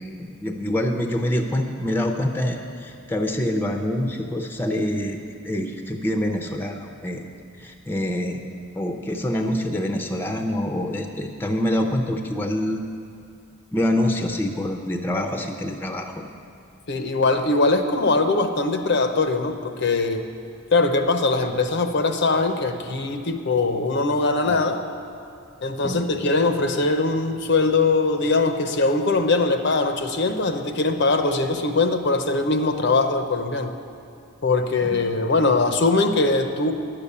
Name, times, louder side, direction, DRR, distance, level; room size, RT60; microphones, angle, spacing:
voice 1, 0.0-5.2 5.4-7.2 7.6-8.4 8.7-12.8 13.7-16.1 24.5-24.6 25.8-26.0 34.9-35.0, left 1 dB, 10° left, 3 dB, 0.6 m, -26 dB
voice 2, 16.9-20.3 20.7-24.8 25.6-33.7 34.4-36.7, left 3 dB, 55° left, 7 dB, 0.7 m, -21 dB
10.5 x 6.8 x 8.5 m, 2.6 s
head